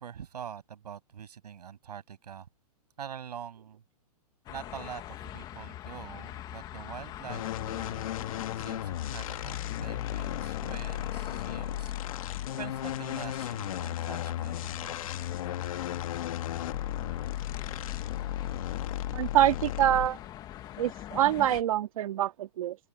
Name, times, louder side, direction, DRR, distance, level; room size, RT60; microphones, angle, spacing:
voice 1, 0.0-2.5 3.0-3.8 4.5-8.1 8.5-15.0, right 8 dB, 90° right, 7.4 m, -44 dB
sound 1, 4.5-21.6, left 12 dB, 20° left, 1.3 m, -43 dB
sound 2, 7.3-20.3, left 12 dB, 60° left, 2.0 m, -35 dB
voice 2, 19.1-20.2 20.8-22.8, right 12 dB, 60° right, 1.8 m, -25 dB
open air
hypercardioid pair, 160°, 20 cm